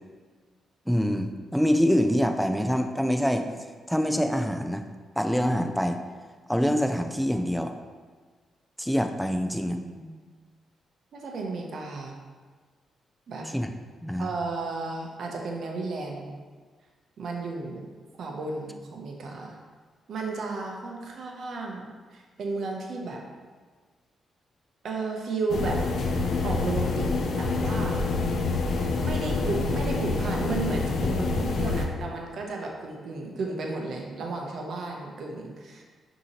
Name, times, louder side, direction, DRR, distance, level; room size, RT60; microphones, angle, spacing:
voice 1, 0.9-3.4 3.9-4.8 5.2-6.0 6.5-7.7 8.8-9.8 13.5-13.7 14.0-14.3, equal, ahead, 5 dB, 0.3 m, -25 dB
voice 2, 9.8-10.1 11.1-12.1 13.3-13.5 14.2-16.3 17.2-17.9 18.2-19.6 20.1-23.2 24.8-25.8 26.4-27.1 27.4-28.0 29.0-35.8, right 3 dB, 65° right, 0 dB, 0.6 m, -33 dB
sound 1, 25.5-31.9, left 3 dB, 70° left, 0.4 m, -27 dB
5.4 x 2.8 x 2.9 m, 1.5 s
cardioid pair, 100°, 0 cm